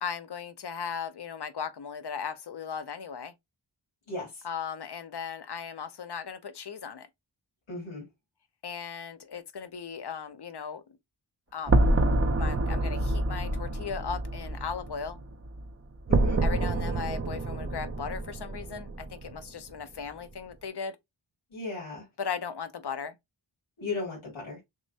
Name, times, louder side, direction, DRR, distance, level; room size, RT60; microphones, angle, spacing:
voice 1, 0.0-3.3 4.4-7.1 8.6-10.8 11.5-11.8 12.4-15.2 16.4-21.0 22.2-23.1, left 6 dB, 55° left, 0.7 m, -37 dB
voice 2, 4.1-4.4 7.7-8.0 16.1-16.4 21.5-22.0 23.8-24.6, left 3 dB, 85° left, 2.5 m, -36 dB
sound 1, 11.7-15.7 16.1-19.4, right 2 dB, 30° right, 0.6 m, -27 dB
6.3 x 2.2 x 2.6 m
wide cardioid pair, 70°, 47 cm